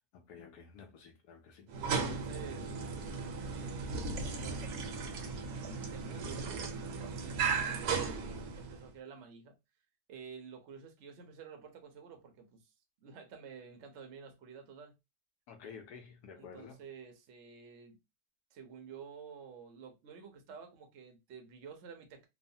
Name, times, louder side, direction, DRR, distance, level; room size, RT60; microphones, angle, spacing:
voice 1, 0.1-1.7 15.5-16.8, left 6 dB, 75° left, 1.0 m, -51 dB
sound 1, 1.7-8.9, right 5 dB, 75° right, 1.1 m, -36 dB
voice 2, 1.9-2.7 3.5-4.8 5.9-6.6 7.1-9.6 10.1-12.7 13.0-14.9 16.4-18.0 18.5-22.3, right 6 dB, 60° right, 0.8 m, -51 dB
3.1 x 2.1 x 2.6 m
omnidirectional pair, 1.8 m